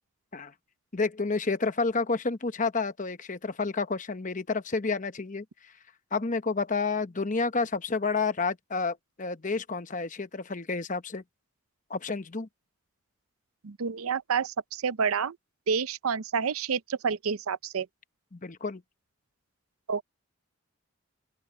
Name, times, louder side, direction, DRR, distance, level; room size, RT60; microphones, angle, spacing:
voice 1, 0.9-5.4 6.1-11.2 11.9-12.5 18.3-18.8, left 4 dB, 35° left, 0.9 m, -30 dB
voice 2, 13.6-15.4 15.7-17.9 19.9-20.0, right 6 dB, 80° right, 0.6 m, -29 dB
open air
head